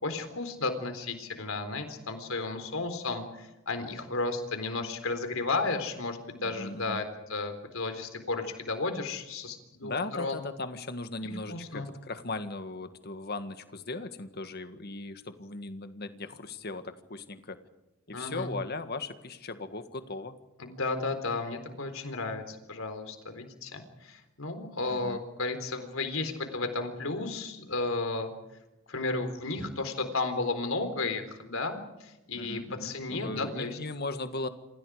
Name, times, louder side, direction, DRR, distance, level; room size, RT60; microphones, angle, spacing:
voice 1, 0.0-7.0 7.3-9.9 10.2-10.4 11.2-11.9 18.1-18.5 20.6-28.3 28.9-33.8, left 3 dB, 75° left, 8 dB, 4.0 m, -33 dB
voice 2, 6.4-7.0 9.8-17.6 18.1-20.4 24.9-25.2 32.3-34.5, left 3 dB, 50° left, 9 dB, 1.8 m, -38 dB
28.0 x 26.5 x 5.0 m, 0.97 s
head